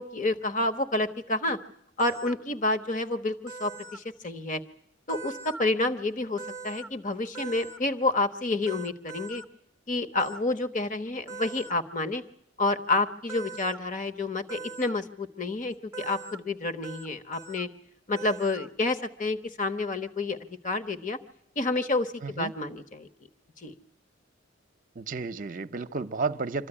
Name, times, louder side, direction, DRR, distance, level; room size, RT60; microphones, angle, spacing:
voice 1, 0.0-1.6 2.0-4.6 5.1-9.4 9.9-12.2 12.6-17.7 18.1-20.4 20.6-21.2 21.6-23.1 23.6-23.7, left 2 dB, 40° left, 1.2 m, -29 dB
sound 1, 2.0-2.3 3.5-4.0 5.1-5.6 6.4-6.9 7.3-7.8 8.7-9.4 10.2-10.4 11.3-11.7 13.3-13.8 14.5-14.9 15.9-16.4 16.8-17.1 17.3-17.6 18.2-18.7, right 4 dB, 15° right, 0.8 m, -41 dB
voice 2, 22.2-22.5 25.0-26.7, right 4 dB, 45° right, 0.8 m, -32 dB
26.5 x 14.0 x 10.0 m
head